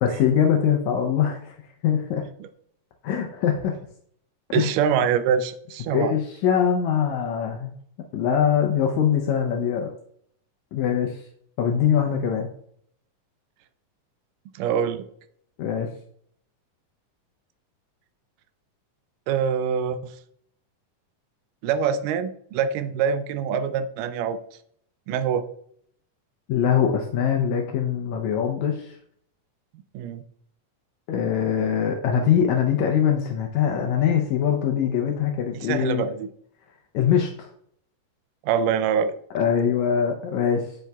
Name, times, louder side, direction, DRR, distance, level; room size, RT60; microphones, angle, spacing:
voice 1, 0.0-1.6 1.8-2.2 3.0-3.7 4.5-4.7 5.9-7.7 8.1-9.9 10.7-11.2 11.6-12.5 15.6-15.9 26.5-29.0 31.1-36.0 36.9-37.5 39.3-40.8, left 8 dB, 80° left, 3 dB, 1.7 m, -22 dB
voice 2, 4.5-6.1 14.6-15.0 19.3-20.1 21.6-24.4 25.1-25.5 29.9-30.2 35.6-36.3 38.4-39.1, right 7 dB, 85° right, 11 dB, 2.1 m, -24 dB
8.0 x 5.9 x 2.3 m, 0.66 s
omnidirectional pair, 3.8 m